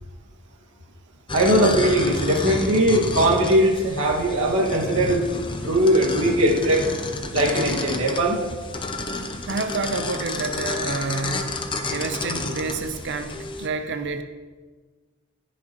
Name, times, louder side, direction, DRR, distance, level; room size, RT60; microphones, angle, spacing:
sound 1, 1.3-13.7, left 2 dB, 25° left, 0.7 m, -30 dB
voice 1, 1.3-5.3 5.6-6.8 7.3-8.4, right 1 dB, 80° right, -2 dB, 1.9 m, -20 dB
voice 2, 9.5-14.2, right 3 dB, 60° right, 7 dB, 0.7 m, -29 dB
18.0 x 6.1 x 3.0 m, 1.4 s
head